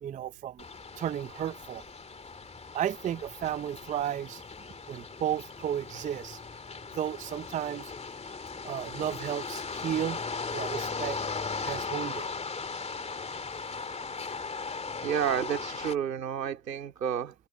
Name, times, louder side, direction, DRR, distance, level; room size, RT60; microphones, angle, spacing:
voice 1, 0.0-0.6 1.0-1.8 2.7-4.4 4.9-6.4 7.0-7.9 8.6-10.2 10.5-11.2 11.6-12.3, right 10 dB, 15° right, 0.6 m, -33 dB
sound 1, 0.6-16.0, left 4 dB, 15° left, 2.4 m, -38 dB
voice 2, 15.0-17.3, right 9 dB, 80° right, 3.5 m, -30 dB
hypercardioid pair, 90°, 49 cm